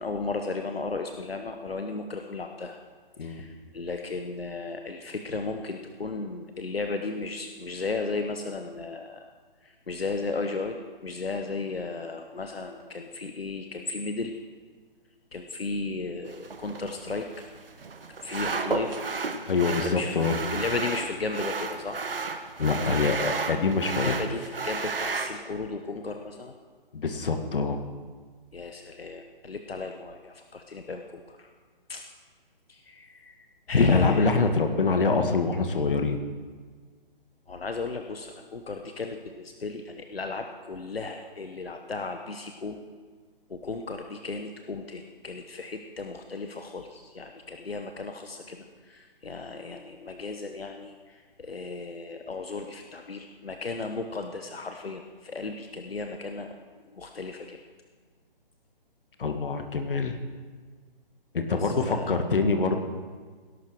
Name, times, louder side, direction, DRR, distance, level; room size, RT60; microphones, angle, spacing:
voice 1, 0.0-2.8 3.2-9.3 9.6-14.4 15.3-17.5 18.2-19.1 19.7-22.1 24.0-26.5 28.5-31.5 31.9-32.1 32.7-34.3 37.5-42.8 43.5-56.6 56.9-57.6 61.5-62.1, left 3 dB, 85° left, 5 dB, 1.1 m, -34 dB
sound 1, 16.3-25.3, right 4 dB, 70° right, 1.4 m, -33 dB
voice 2, 19.5-20.4 22.6-24.2 26.9-27.8 33.8-36.2 59.2-60.1 61.3-62.8, left 4 dB, 65° left, 6 dB, 1.7 m, -25 dB
17.5 x 11.5 x 4.7 m, 1.5 s
figure-of-eight pair, 145°, 29 cm